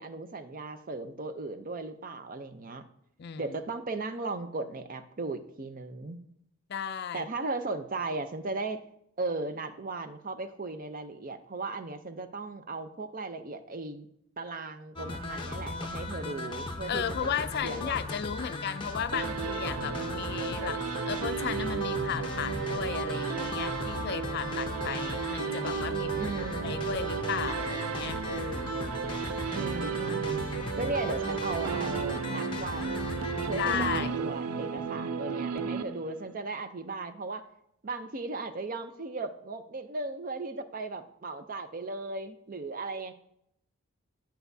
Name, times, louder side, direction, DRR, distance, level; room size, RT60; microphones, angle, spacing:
voice 1, 0.0-2.8 3.4-6.2 7.1-8.8 9.2-14.1 14.4-18.0 26.2-27.0 29.5-30.5 30.8-33.1 33.5-37.4 37.8-43.1, right 3 dB, 40° right, 10 dB, 0.5 m, -37 dB
voice 2, 3.2-3.6 6.7-7.3 16.9-26.3 26.6-28.9 33.5-34.3, left 8 dB, 50° left, 12 dB, 0.4 m, -35 dB
sound 1, 15.0-34.0, left 3 dB, 20° left, 0.8 m, -37 dB
sound 2, 19.1-36.3, right 6 dB, 90° right, 0.4 m, -34 dB
10.0 x 8.1 x 2.7 m, 0.75 s
head